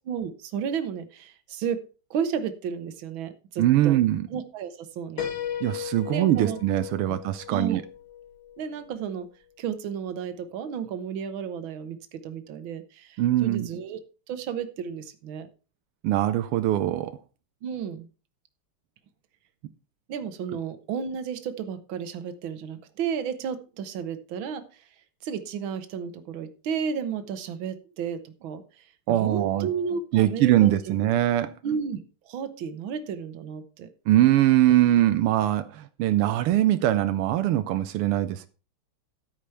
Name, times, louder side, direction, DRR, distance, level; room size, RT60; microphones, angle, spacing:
voice 1, 0.1-1.8 2.1-4.0 4.3-5.2 6.1-6.6 7.1-7.2 7.5-7.8 8.6-9.3 9.6-14.0 14.3-15.5 17.6-18.1 20.1-24.9 25.2-30.9 31.6-32.0 32.3-33.9, right 7 dB, 70° right, 1.8 m, -33 dB
voice 2, 3.6-4.3 5.6-7.8 13.2-13.7 16.0-17.2 29.1-29.7 30.1-31.5 34.1-38.5, right 13 dB, 90° right, 1.7 m, -22 dB
Piano, 5.2-8.9, left 9 dB, 75° left, 2.7 m, -36 dB
13.5 x 5.1 x 5.7 m
omnidirectional pair, 2.4 m